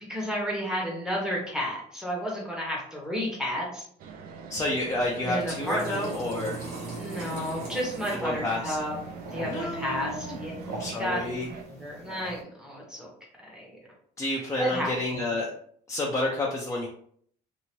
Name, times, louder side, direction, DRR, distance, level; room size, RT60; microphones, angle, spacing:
voice 1, 0.1-3.8 5.2-6.1 7.0-8.9 9.3-10.5 11.0-11.2 11.7-13.1 13.4-13.8 14.6-15.2, equal, 5° right, -3 dB, 1.2 m, -32 dB
sound 1, 4.0-11.6, right 5 dB, 60° right, 0.5 m, -41 dB
voice 2, 4.5-6.7 8.1-8.8 9.4-10.4 10.7-11.5 14.2-15.5 15.9-16.9, left 2 dB, 15° left, -3 dB, 0.5 m, -30 dB
sound 2, 5.3-12.4, right 2 dB, 75° right, 1.2 m, -42 dB
2.9 x 2.6 x 2.9 m, 0.62 s
cardioid pair, 110°, 17 cm